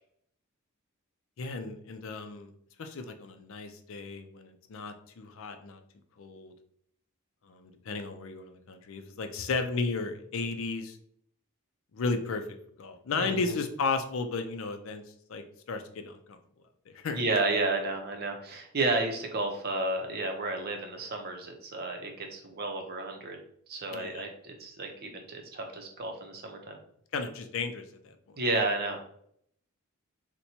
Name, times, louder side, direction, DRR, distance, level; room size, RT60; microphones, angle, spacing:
voice 1, 1.4-2.5 2.8-5.8 6.2-6.5 7.5-11.0 11.9-15.0 15.3-16.4 16.9-17.2 23.9-24.2 27.1-28.2, left 4 dB, 65° left, 7 dB, 0.4 m, -34 dB
voice 2, 13.1-13.5 17.1-23.4 23.7-26.8 28.4-29.0, right 2 dB, 45° right, 3 dB, 0.6 m, -32 dB
4.2 x 2.2 x 2.7 m, 0.66 s
head